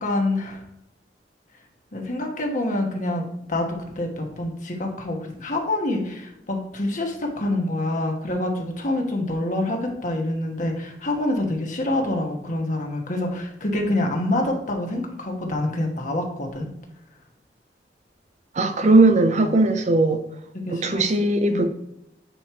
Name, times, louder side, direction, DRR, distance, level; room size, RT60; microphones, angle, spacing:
voice 1, 0.0-0.6 1.9-3.7 3.9-16.7 18.8-18.9 19.4-19.5 20.7-21.0 21.5-21.7, left 1 dB, 45° left, 2 dB, 1.3 m, -26 dB
voice 2, 18.5-20.2 20.7-21.7, right 2 dB, 40° right, 8 dB, 0.5 m, -18 dB
8.6 x 3.0 x 4.6 m, 0.81 s
head